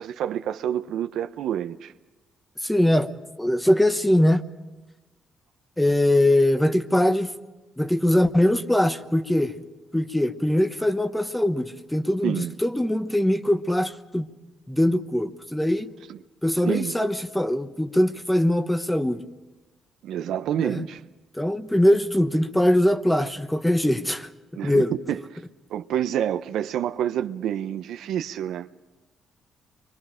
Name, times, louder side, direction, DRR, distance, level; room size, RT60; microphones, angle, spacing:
voice 1, 0.0-1.9 12.2-12.5 16.1-16.2 16.6-16.9 20.0-21.0 24.6-25.2 25.7-28.7, right 10 dB, 80° right, 0.7 m, -28 dB
voice 2, 2.6-3.1 3.4-4.5 5.8-7.3 7.8-9.6 9.9-14.3 14.7-15.9 16.4-19.2 20.6-20.9 21.3-24.3 24.6-24.9, left 1 dB, 5° left, 1.0 m, -22 dB
30.0 x 23.5 x 5.0 m
cardioid pair, 90°, 0 cm